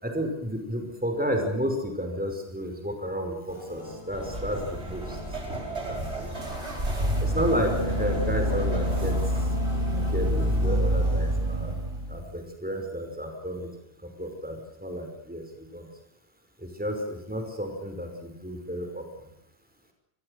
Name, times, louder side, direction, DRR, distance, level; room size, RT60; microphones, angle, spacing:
voice 1, 0.0-5.2 5.9-6.3 7.2-9.2 9.9-11.7 12.1-13.7 14.2-15.4 15.7-15.9 16.8-19.3, equal, 10° right, 4 dB, 5.4 m, -31 dB
sound 1, 3.5-11.4, equal, 25° left, 6.8 m, -43 dB
sound 2, 4.1-9.5, right 2 dB, 85° right, 5.8 m, -36 dB
sound 3, 6.4-12.3, equal, 55° right, 4.2 m, -26 dB
27.5 x 21.5 x 6.6 m, 0.84 s
omnidirectional pair, 1.1 m